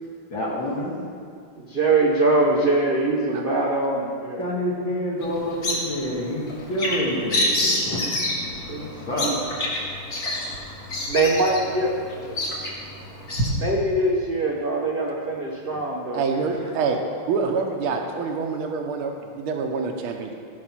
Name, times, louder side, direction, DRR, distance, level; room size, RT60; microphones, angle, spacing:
voice 1, 0.3-1.0 4.4-8.0 8.3-9.5, equal, 65° left, -7 dB, 2.3 m, -28 dB
voice 2, 1.6-4.4 8.7-9.4 11.1-12.4 13.5-16.3, right 2 dB, 55° right, -2 dB, 0.6 m, -23 dB
Bird vocalization bird call bird song, 5.2-13.5, left 1 dB, 50° left, 2.2 m, -28 dB
voice 3, 16.1-17.0 17.3-20.3, right 5 dB, 80° right, 3 dB, 1.8 m, -26 dB
15.0 x 5.4 x 5.9 m, 2.2 s
omnidirectional pair, 2.3 m